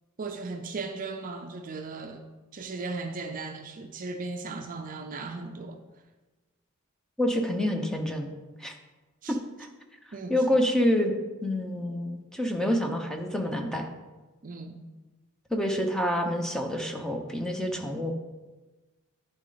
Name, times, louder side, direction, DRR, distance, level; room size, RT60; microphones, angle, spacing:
voice 1, 0.2-2.2 2.5-5.8 9.2-9.4 10.1-10.4 14.4-14.8, right 3 dB, 40° right, 6 dB, 0.5 m, -37 dB
voice 2, 7.2-8.3 8.6-8.7 9.3-9.7 10.3-11.1 11.4-13.9 15.5-18.1, left 1 dB, 5° left, 3 dB, 0.7 m, -27 dB
11.0 x 4.1 x 3.9 m, 1.2 s
head